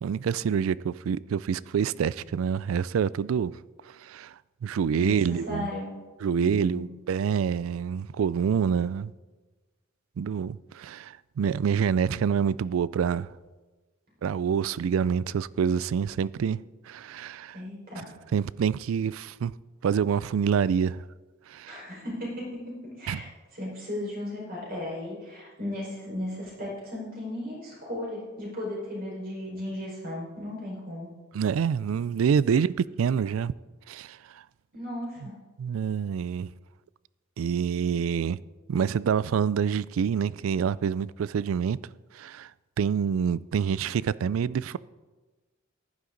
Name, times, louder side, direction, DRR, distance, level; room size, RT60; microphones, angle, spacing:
voice 1, 0.0-3.6 3.8-5.7 6.2-9.1 10.2-13.3 14.2-16.6 16.9-17.6 18.3-19.5 19.8-21.0 21.5-21.8 23.1-23.2 31.3-33.5 33.9-34.4 35.6-36.5 37.4-38.4 38.7-41.8 42.1-42.5 42.8-44.8, right 7 dB, 80° right, 0.3 m, -27 dB
voice 2, 5.0-5.9 6.4-6.8 17.5-18.1 21.7-22.4 23.0-31.1 34.7-35.3, left 1 dB, 45° right, 5.0 m, -35 dB
15.0 x 11.0 x 3.9 m
head